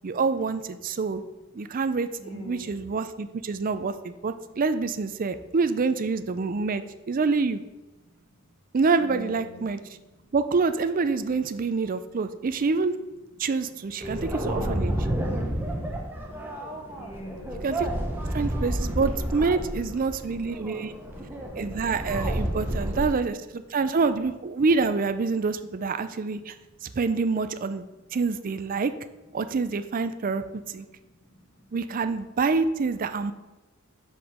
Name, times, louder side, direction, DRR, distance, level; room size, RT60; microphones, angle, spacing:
voice 1, 0.0-1.2 1.5-7.6 8.7-9.8 10.3-13.0 13.4-14.9 17.6-17.9 18.3-20.9 21.5-26.5 26.8-28.9 29.3-30.8 31.7-33.3, right 4 dB, 40° right, 11 dB, 0.4 m, -26 dB
voice 2, 1.2-1.7 2.2-2.9 3.5-3.8 4.4-4.6 8.0-8.5 9.0-10.3 11.9-12.3 13.3-13.4 16.9-17.7 26.0-27.0 27.9-28.1 30.8-31.7, left 1 dB, 80° left, 0 dB, 2.0 m, -49 dB
sound 1, 14.0-23.1, right 1 dB, 10° right, 0.9 m, -30 dB
5.3 x 5.0 x 6.0 m, 1.1 s
head